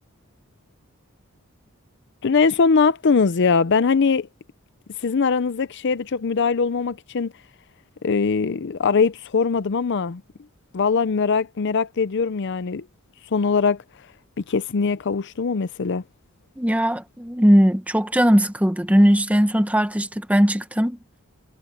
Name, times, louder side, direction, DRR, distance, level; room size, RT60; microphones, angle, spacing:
voice 1, 2.2-4.3 5.0-7.3 8.0-10.2 10.7-12.9 13.3-13.8 14.5-16.0, left 5 dB, 55° left, 0.5 m, -21 dB
voice 2, 16.6-21.0, equal, 5° right, 1.1 m, -19 dB
head